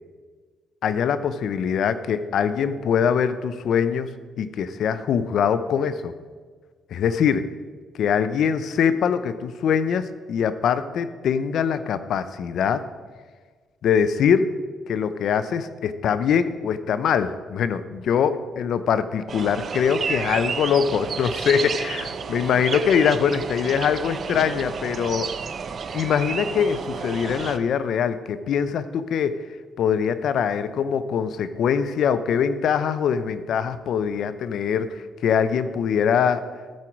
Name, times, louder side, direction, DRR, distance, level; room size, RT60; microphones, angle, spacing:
voice 1, 0.8-6.1 6.9-7.5 8.0-12.8 13.8-14.5 14.9-25.3 25.9-29.4 29.8-36.4, left 7 dB, 70° left, 13 dB, 0.6 m, -23 dB
sound 1, 19.3-27.6, right 5 dB, 50° right, 0.5 m, -31 dB
13.5 x 4.6 x 5.9 m, 1.5 s
cardioid pair, 90°, 0 cm